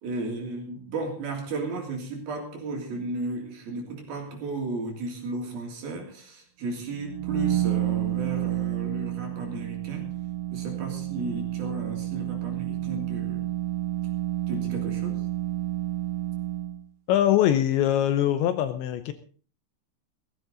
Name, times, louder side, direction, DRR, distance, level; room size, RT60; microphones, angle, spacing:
voice 1, 0.0-10.1 10.5-13.5 14.5-15.3, right 2 dB, 50° right, 4.7 m, -34 dB
sound 1, 6.9-16.8, right 14 dB, 70° right, 2.5 m, -30 dB
voice 2, 17.1-19.1, left 11 dB, 75° left, 2.9 m, -22 dB
17.0 x 15.5 x 3.9 m
omnidirectional pair, 5.7 m